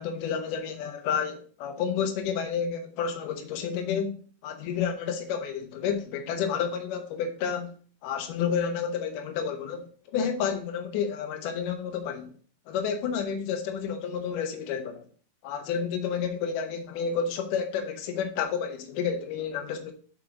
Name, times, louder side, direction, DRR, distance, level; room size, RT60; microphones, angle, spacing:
voice 1, 0.0-4.2 4.4-7.7 8.0-12.3 12.7-15.0 15.4-19.9, left 7 dB, 70° left, 2.2 m, -30 dB
5.5 x 5.1 x 5.9 m
omnidirectional pair, 4.8 m